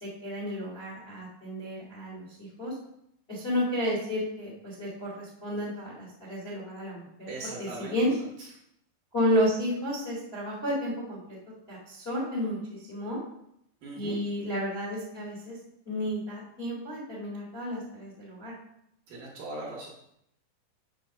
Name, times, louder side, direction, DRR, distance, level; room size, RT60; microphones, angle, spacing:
voice 1, 0.0-2.7 3.3-7.3 7.6-8.1 9.1-11.4 11.7-13.2 13.9-15.6 15.8-18.5, equal, 25° left, -5 dB, 1.3 m, -32 dB
voice 2, 7.3-8.5 13.8-14.2 19.1-19.9, right 2 dB, 65° right, -3 dB, 2.4 m, -40 dB
7.6 x 4.3 x 6.5 m, 0.78 s
omnidirectional pair, 4.9 m